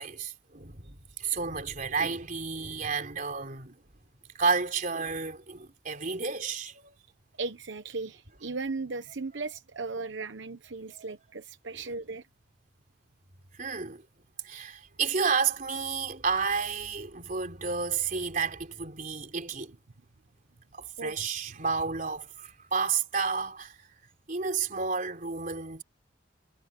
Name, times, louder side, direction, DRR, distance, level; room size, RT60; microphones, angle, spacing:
voice 1, 0.0-3.8 4.4-6.9 10.9-11.1 11.7-11.8 13.6-14.0 14.4-19.8 20.7-23.8 24.3-25.8, right 5 dB, 45° right, 3.7 m, -31 dB
voice 2, 7.4-12.2 21.0-21.1, right 3 dB, 85° right, 1.0 m, -36 dB
head